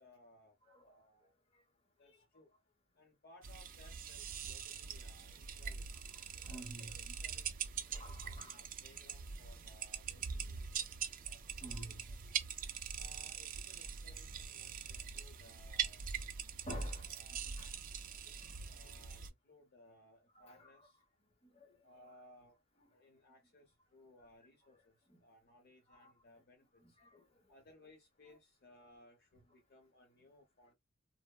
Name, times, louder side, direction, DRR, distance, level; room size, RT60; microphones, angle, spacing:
voice 1, 0.0-1.3 2.0-2.5 2.9-6.0 6.4-11.9 12.9-16.1 17.1-17.5 18.7-21.0 21.8-22.6 22.9-27.0 27.5-30.7, left 1 dB, 50° left, 0.8 m, -64 dB
sound 1, 3.4-19.3, right 7 dB, 40° right, 0.3 m, -43 dB
voice 2, 6.4-7.1 7.9-8.6 11.6-12.3 14.9-15.0 16.6-17.1 17.6-17.7 18.2-18.7 20.3-20.7 21.4-21.8 25.1-25.2 25.9-26.1 26.8-27.5, right 1 dB, 30° left, 1.0 m, -49 dB
3.3 x 2.0 x 2.3 m
head